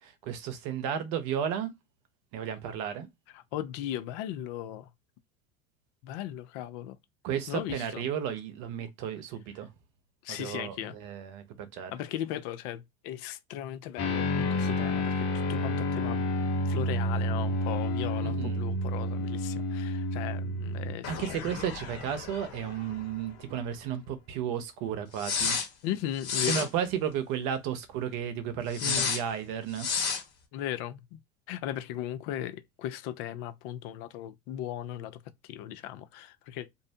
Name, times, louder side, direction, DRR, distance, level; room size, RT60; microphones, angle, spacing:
voice 1, 0.0-1.7 2.3-3.1 7.2-9.7 10.3-12.0 18.2-18.6 21.1-25.6 26.5-29.9, right 9 dB, 55° right, 0.8 m, -33 dB
voice 2, 3.5-4.9 6.0-7.0 7.5-8.0 10.2-10.9 11.9-16.2 16.7-21.6 25.8-26.7 28.8-29.1 30.5-31.2 31.5-36.7, left 11 dB, 55° left, 0.5 m, -37 dB
sound 1, 14.0-23.1 23.4-23.5 25.2-25.7 26.2-26.7 28.7-29.2 29.8-30.2, left 2 dB, 35° left, 1.2 m, -30 dB
2.6 x 2.0 x 2.7 m
hypercardioid pair, 90°, 42 cm